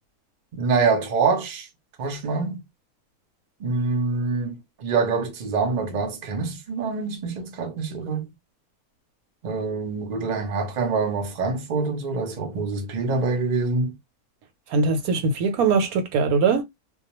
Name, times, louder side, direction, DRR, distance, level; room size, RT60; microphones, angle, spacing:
voice 1, 0.5-1.7 2.0-2.6 3.6-8.2 9.4-14.0, right 4 dB, 45° right, 0.6 m, -25 dB
voice 2, 14.7-16.6, right 4 dB, 80° right, 1.1 m, -21 dB
2.3 x 2.2 x 2.9 m
omnidirectional pair, 1.5 m